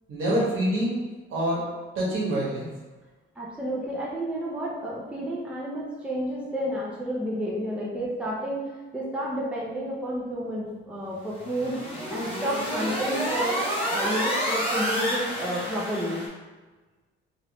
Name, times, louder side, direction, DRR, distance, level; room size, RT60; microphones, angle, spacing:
voice 1, 0.1-1.0 1.3-2.7, right 1 dB, 75° right, -5 dB, 1.3 m, -26 dB
voice 2, 3.4-16.3, equal, 5° right, -5 dB, 0.6 m, -31 dB
sound 1, 11.3-16.3, equal, 25° left, 1.1 m, -29 dB
3.4 x 2.5 x 3.0 m, 1.3 s
cardioid pair, 155°, 21 cm